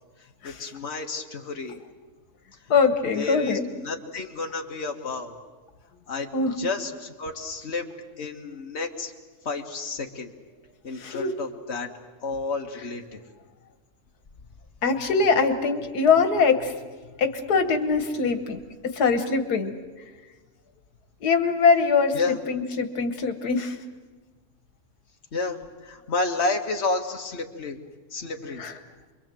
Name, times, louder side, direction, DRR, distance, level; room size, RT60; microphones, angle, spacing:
voice 1, 0.4-1.8 3.1-5.4 6.1-7.9 8.2-9.1 9.5-10.3 10.8-11.9 12.2-13.2 22.1-22.4 25.3-27.8 28.1-28.6, left 3 dB, 45° left, 2 dB, 2.0 m, -31 dB
voice 2, 2.7-3.6 6.3-6.7 11.0-11.3 14.8-16.7 17.2-18.6 18.9-19.7 21.2-22.2 22.5-23.8 28.6-28.7, left 5 dB, 85° left, 8 dB, 1.8 m, -22 dB
28.5 x 23.0 x 7.7 m, 1.4 s
omnidirectional pair, 1.6 m